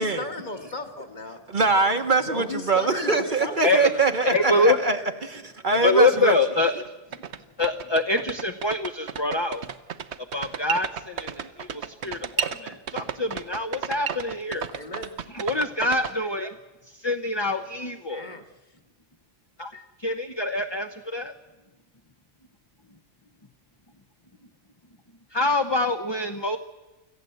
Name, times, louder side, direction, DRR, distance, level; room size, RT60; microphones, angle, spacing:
voice 1, 0.0-1.4 2.0-4.1 14.5-15.2 18.1-18.4, left 3 dB, 40° left, 1.8 m, -36 dB
voice 2, 1.5-6.3, right 4 dB, 45° right, 1.3 m, -23 dB
voice 3, 4.2-4.8 5.8-6.8 7.6-9.6 10.3-14.7 15.3-16.5 16.9-18.3 19.6-21.3 25.3-26.6, left 2 dB, 25° left, 0.8 m, -25 dB
sound 1, 6.9-7.0 7.1-16.1, right 8 dB, 70° right, 1.2 m, -32 dB
25.5 x 14.5 x 7.9 m
omnidirectional pair, 1.2 m